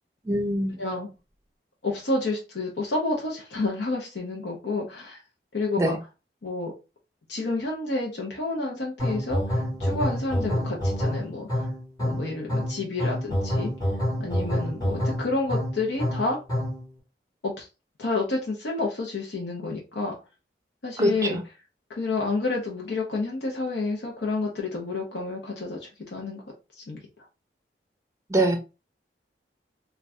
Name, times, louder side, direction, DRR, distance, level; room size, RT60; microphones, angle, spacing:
voice 1, 0.2-0.8 5.8-6.0 21.0-21.4 28.3-28.6, right 1 dB, 15° right, 0.5 m, -23 dB
voice 2, 1.8-5.2 5.5-6.0 6.4-6.7 7.3-11.7 12.0-13.7 14.2-16.4 17.4-17.7 18.0-20.2 20.8-21.4 21.9-26.4 26.8-27.2, left 3 dB, 80° left, 0.7 m, -29 dB
sound 1, 9.0-16.9, equal, 20° left, 1.3 m, -27 dB
2.5 x 2.3 x 3.3 m
head